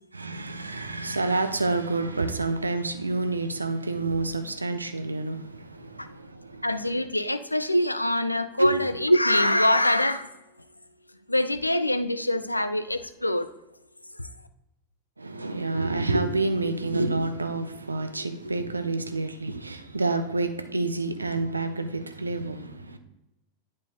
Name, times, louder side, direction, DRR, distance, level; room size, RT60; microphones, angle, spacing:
voice 1, 0.1-6.6 8.6-8.8 15.2-23.0, right 2 dB, 80° right, 0.6 m, -28 dB
voice 2, 6.6-10.3 11.3-13.5 14.1-14.3, left 1 dB, 85° left, 0.4 m, -24 dB
10.5 x 4.7 x 2.8 m
figure-of-eight pair, 90°, 0 cm